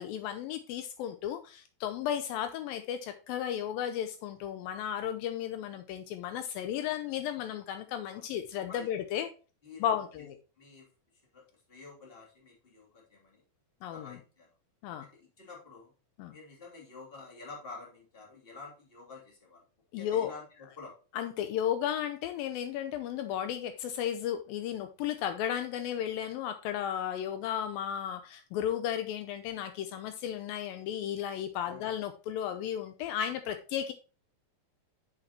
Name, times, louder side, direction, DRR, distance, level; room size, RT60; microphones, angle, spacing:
voice 1, 0.0-9.3 9.8-10.4 13.8-14.2 14.8-15.1 16.2-16.4 19.9-20.3 21.1-33.9, left 10 dB, 80° left, 9 dB, 2.4 m, -34 dB
voice 2, 9.6-10.9 11.3-13.4 13.9-14.5 15.0-15.9 16.3-19.6 19.9-20.9 31.6-31.9, left 4 dB, 15° left, -2 dB, 2.4 m, -49 dB
8.7 x 6.6 x 2.9 m, 0.35 s
omnidirectional pair, 4.3 m